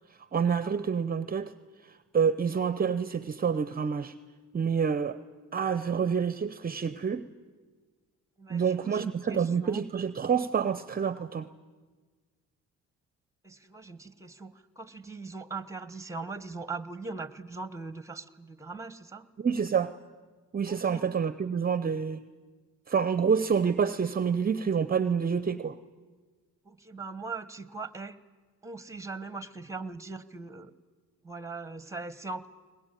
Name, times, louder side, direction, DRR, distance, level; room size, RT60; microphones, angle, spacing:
voice 1, 0.3-1.5 1.8-4.1 4.5-5.2 5.5-7.3 8.5-11.5 19.4-19.9 20.5-22.2 22.9-25.8, right 6 dB, 30° right, 15 dB, 0.7 m, -28 dB
voice 2, 8.4-9.9 13.4-19.3 20.7-21.1 26.6-28.2 28.6-30.7 31.2-32.5, right 3 dB, 10° right, 16 dB, 1.2 m, -40 dB
22.0 x 19.5 x 9.1 m, 1.4 s
cardioid pair, 90°, 30 cm